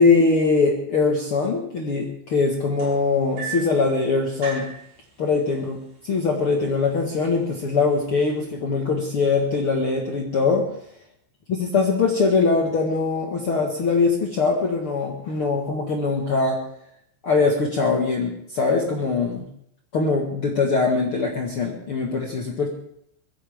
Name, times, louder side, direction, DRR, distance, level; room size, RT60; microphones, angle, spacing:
voice 1, 0.0-4.7 5.2-5.8 6.0-10.7 11.5-16.6 17.2-19.4 19.9-22.7, left 4 dB, 80° left, 0 dB, 1.2 m, -22 dB
sound 1, 2.8-3.8 4.4-4.8 5.8-5.9 6.4-6.7 7.4-7.5, right 4 dB, 40° right, 6.0 m, -34 dB
22.0 x 15.5 x 3.6 m, 0.69 s
omnidirectional pair, 5.3 m